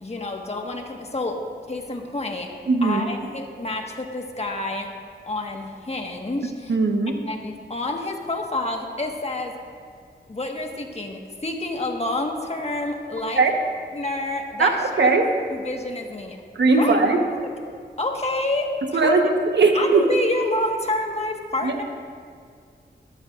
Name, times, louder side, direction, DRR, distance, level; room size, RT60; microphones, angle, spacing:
voice 1, 0.0-1.4 1.7-2.5 2.8-4.9 5.3-6.8 7.3-9.6 10.3-13.5 13.9-15.1 15.5-16.4 16.7-17.0 18.0-19.2 19.7-21.8, left 2 dB, 35° left, 2 dB, 1.5 m, -28 dB
voice 2, 2.7-3.0 6.7-7.2 13.4-13.5 14.6-14.7 15.0-15.2 16.5-17.2 18.9-19.2 19.6-20.0 21.6-21.8, right 4 dB, 85° right, 3 dB, 1.2 m, -18 dB
20.5 x 12.0 x 2.5 m, 2.2 s
wide cardioid pair, 70°, 18 cm